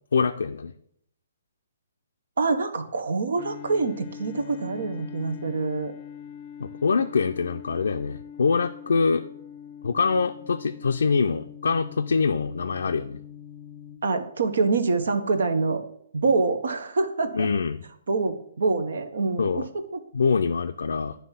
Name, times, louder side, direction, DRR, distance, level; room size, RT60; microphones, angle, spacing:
voice 1, 0.1-0.7 6.6-9.2 9.8-13.2 17.3-17.8 19.4-19.7 20.1-21.2, left 5 dB, 85° left, 5 dB, 0.4 m, -24 dB
voice 2, 2.4-5.9 14.0-15.8 16.1-17.5 18.1-20.0, right 4 dB, 80° right, 9 dB, 0.9 m, -25 dB
sound 1, 3.4-14.0, left 9 dB, 30° left, 0.5 m, -42 dB
9.5 x 3.5 x 5.6 m, 0.69 s
hypercardioid pair, 155°, 0 cm